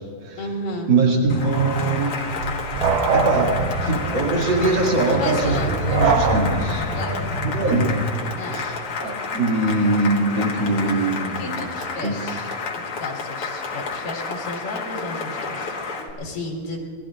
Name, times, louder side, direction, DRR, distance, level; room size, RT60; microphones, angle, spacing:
voice 1, 0.4-0.9 5.0-5.8 6.9-7.2 7.7-7.8 8.4-8.6 11.4-16.8, left 2 dB, 75° left, -2 dB, 3.6 m, -33 dB
voice 2, 0.9-2.1 3.1-6.9 7.4-8.0 8.5-8.7 9.0-11.7 12.0-12.1, right 3 dB, 40° right, -1 dB, 2.4 m, -22 dB
Cheering / Applause, 1.3-16.1, left 4 dB, 50° left, 1.9 m, -31 dB
sound 1, 1.3-7.0, right 4 dB, 75° right, 1.5 m, -24 dB
sound 2, 2.7-8.0, equal, 20° right, 2.7 m, -30 dB
28.0 x 19.0 x 2.5 m, 2.3 s
omnidirectional pair, 4.0 m